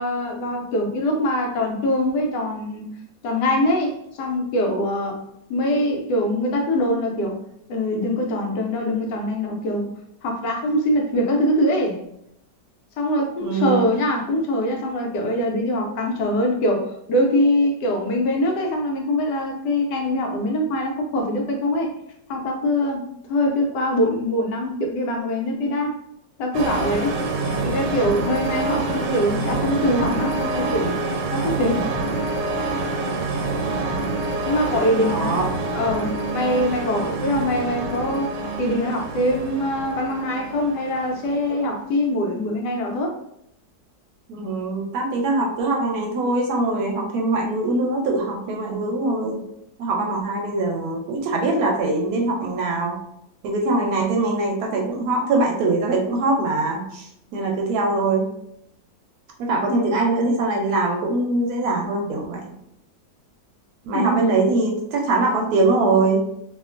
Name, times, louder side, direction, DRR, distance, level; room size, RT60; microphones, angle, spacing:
voice 1, 0.0-2.9 3.2-5.2 5.5-7.4 7.7-9.9 10.2-12.0 13.0-21.9 22.3-23.0 23.3-25.9 26.4-27.2 27.6-30.9 31.3-31.9 34.5-35.3 35.7-38.3 38.6-43.1 59.7-59.8 63.9-64.2, left 1 dB, 85° left, 1 dB, 1.2 m, -23 dB
voice 2, 13.4-13.8 35.1-35.4 44.3-49.4 49.8-53.0 53.4-58.3 59.4-62.5 63.8-66.2, right 2 dB, 70° right, 1 dB, 1.0 m, -22 dB
sound 1, 26.5-41.7, right 3 dB, 90° right, 1.2 m, -26 dB
2.8 x 2.4 x 2.4 m, 0.77 s
omnidirectional pair, 1.8 m